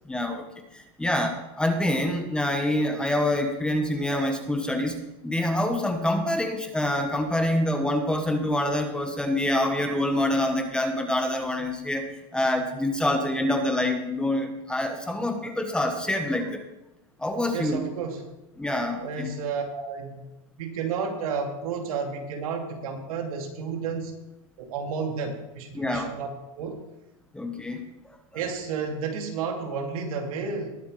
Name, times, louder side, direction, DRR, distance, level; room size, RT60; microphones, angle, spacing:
voice 1, 0.1-5.0 5.2-12.1 12.3-16.6 17.2-17.8 18.6-19.3 25.7-26.1 27.3-27.8 28.3-28.4, left 1 dB, 5° left, 5 dB, 1.1 m, -26 dB
voice 2, 17.5-18.2 19.0-20.2 20.6-24.1 24.6-26.3 26.6-26.8 28.3-30.8, right 5 dB, 80° right, 2 dB, 2.6 m, -31 dB
20.0 x 7.7 x 3.3 m, 0.94 s
supercardioid pair, 150°, 18 cm